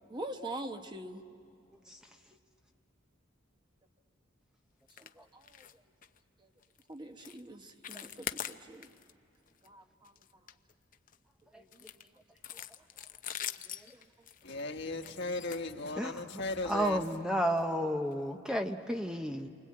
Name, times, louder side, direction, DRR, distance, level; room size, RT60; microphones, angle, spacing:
voice 1, 0.1-1.2 5.0-5.8 6.4-6.5 6.9-8.9 9.6-10.1 11.5-12.1 12.5-12.6 13.9-14.1, right 1 dB, 20° right, 1.1 m, -44 dB
sound 1, 4.9-5.1 5.4-5.7 6.0-6.2 6.6-6.8 7.2-7.4 7.7-9.1 9.5-9.7 10.0-11.2 11.7-16.3 17.0-17.2 17.6-17.7 18.1-18.2, left 10 dB, 40° left, 0.7 m, -43 dB
voice 2, 14.4-17.2, left 2 dB, 60° left, 1.5 m, -37 dB
voice 3, 16.6-19.5, equal, 5° right, 0.7 m, -32 dB
28.5 x 24.0 x 8.6 m
head